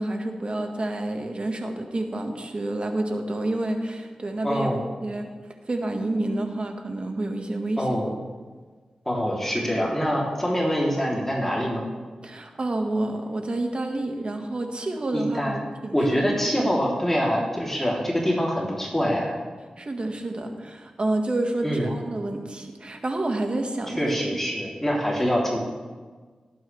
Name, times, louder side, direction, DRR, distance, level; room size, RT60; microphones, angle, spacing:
voice 1, 0.0-4.7 5.0-5.3 5.7-7.9 12.2-16.2 19.8-24.2 25.2-25.3, right 2 dB, 50° right, 4 dB, 1.8 m, -29 dB
voice 2, 4.4-4.8 7.8-8.1 9.1-11.8 15.1-15.6 15.9-19.4 21.6-21.9 24.0-25.6, equal, 15° left, -3 dB, 3.4 m, -25 dB
18.0 x 8.7 x 3.5 m, 1.4 s
cardioid pair, 40°, 2 cm